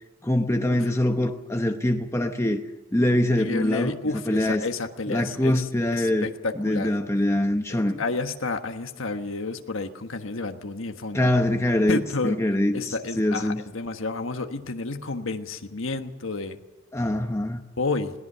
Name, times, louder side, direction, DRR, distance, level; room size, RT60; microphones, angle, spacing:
voice 1, 0.2-2.6 2.9-4.0 4.3-4.6 5.1-6.3 6.6-8.0 11.1-13.6 16.9-17.6, left 1 dB, 15° left, 0.9 m, -24 dB
voice 2, 3.4-6.9 7.8-11.3 11.9-12.4 12.7-16.6 17.8-18.1, left 3 dB, 90° left, 1.4 m, -30 dB
21.5 x 18.0 x 6.8 m
head